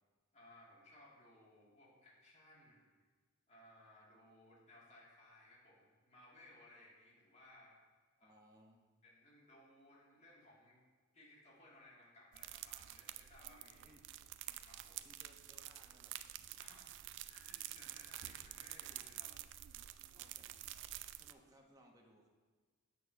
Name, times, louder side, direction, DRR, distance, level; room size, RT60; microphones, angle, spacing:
voice 1, 0.3-2.9 3.5-7.8 8.2-8.4 9.0-10.8 11.1-14.0 14.6-15.1 16.6-16.9 17.2-19.5, left 1 dB, 35° left, -5 dB, 2.1 m, -62 dB
voice 2, 8.2-8.9 13.9-14.0 15.0-16.2 20.1-20.7 21.1-22.3, right 1 dB, 15° right, 0 dB, 1.0 m, -65 dB
sound 1, 12.3-21.3, right 13 dB, 60° right, 0.3 m, -49 dB
8.4 x 4.1 x 6.2 m, 1.4 s
head